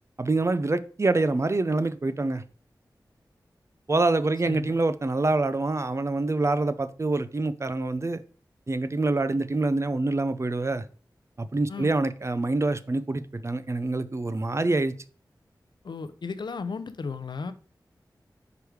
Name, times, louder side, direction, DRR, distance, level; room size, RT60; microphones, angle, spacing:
voice 1, 0.2-2.4 3.9-8.2 8.7-10.8 11.4-14.9, right 2 dB, 40° right, 0.5 m, -26 dB
voice 2, 15.8-17.5, left 4 dB, 75° left, 0.6 m, -34 dB
5.0 x 4.8 x 4.7 m
cardioid pair, 50°, 8 cm